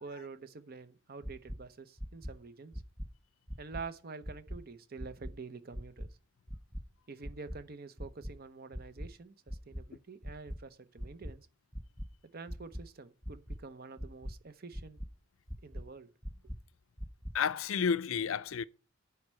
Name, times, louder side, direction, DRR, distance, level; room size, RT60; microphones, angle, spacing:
voice 1, 0.0-2.8 3.6-6.1 7.1-11.5 12.3-15.0 15.6-16.1, right 4 dB, 45° right, 0.7 m, -47 dB
sound 1, 1.2-1.6 2.0-2.3 2.7-3.1 3.5-3.8 4.2-4.6 5.0-5.3 5.7-6.1 6.5-6.8 7.2-7.6 8.0-8.3 8.7-9.1 9.5-9.8 10.2-10.6 11.0-11.3 11.7-12.1 12.5-12.8 13.2-13.6 14.0-14.3 14.7-15.1 15.5-15.8 16.2-16.6 17.0-17.3, equal, 5° right, 0.4 m, -40 dB
voice 2, 17.3-18.7, left 6 dB, 80° left, 0.5 m, -31 dB
9.4 x 4.5 x 7.4 m
head